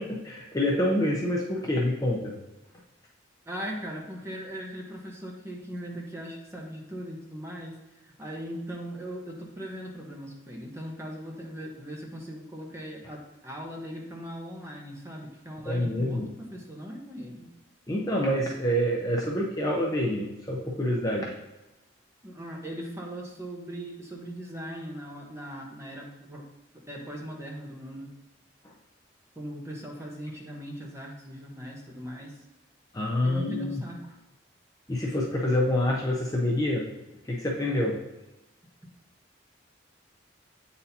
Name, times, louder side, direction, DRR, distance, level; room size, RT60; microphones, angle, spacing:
voice 1, 0.0-2.3 15.6-16.3 17.9-21.3 28.6-28.7 32.9-33.8 34.9-36.8 37.2-38.0, left 1 dB, 20° left, -2 dB, 0.6 m, -27 dB
voice 2, 3.5-7.8 8.0-17.5 22.2-26.4 26.9-28.1 29.4-32.3 33.2-34.2, equal, 15° right, -1 dB, 0.9 m, -39 dB
8.4 x 4.2 x 2.7 m, 1.0 s
head